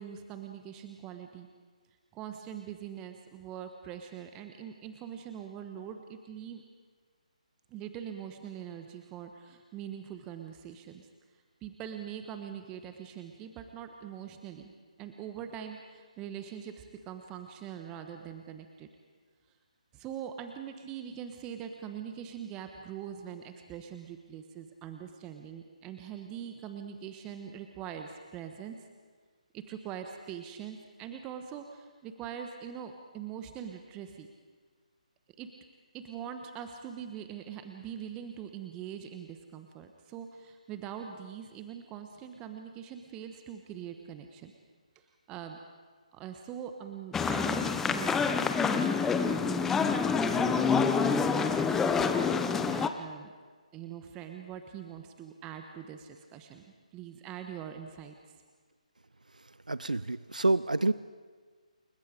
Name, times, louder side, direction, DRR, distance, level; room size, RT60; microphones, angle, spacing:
voice 1, 0.0-1.5 2.1-6.6 7.7-11.1 11.6-14.7 15.0-18.9 19.9-28.8 29.5-34.3 35.4-35.5 35.9-44.5 44.9-45.6 46.1-53.3 53.7-56.7 56.9-58.1, right 9 dB, 15° right, 6 dB, 1.2 m, -43 dB
sound 1, 47.1-52.9, left 5 dB, 5° left, 0.8 m, -27 dB
voice 2, 59.7-60.9, right 2 dB, 90° right, 17 dB, 0.6 m, -27 dB
29.0 x 21.0 x 5.2 m, 1.5 s
figure-of-eight pair, 145°, 4 cm